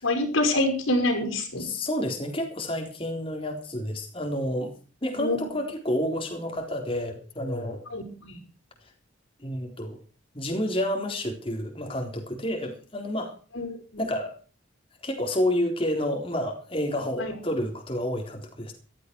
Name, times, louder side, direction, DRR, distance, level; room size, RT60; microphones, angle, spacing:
voice 1, 0.0-1.7 5.2-5.4 7.9-8.4 13.5-14.0 17.2-17.3, left 1 dB, 85° left, 5 dB, 5.4 m, -26 dB
voice 2, 1.6-4.7 5.0-7.8 9.4-10.0 10.3-13.3 14.0-14.4 15.0-18.7, left 1 dB, 25° left, 3 dB, 3.8 m, -29 dB
15.5 x 13.5 x 4.7 m, 0.38 s
head